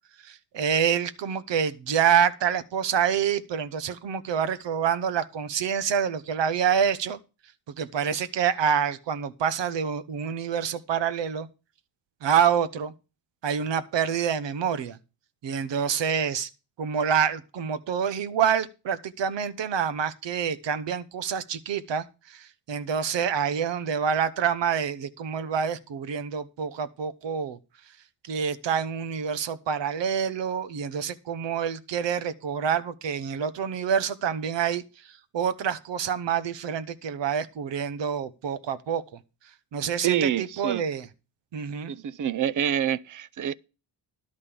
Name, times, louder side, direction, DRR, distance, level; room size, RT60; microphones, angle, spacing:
voice 1, 0.2-7.2 7.8-11.5 12.2-12.9 13.4-15.0 15.4-16.5 16.8-27.6 28.2-39.0 39.7-41.1 41.5-41.9, right 7 dB, 65° right, 1.0 m, -27 dB
voice 2, 40.0-40.8 41.9-43.5, right 9 dB, 45° right, 0.6 m, -26 dB
11.5 x 5.3 x 6.8 m
cardioid pair, 100°, 46 cm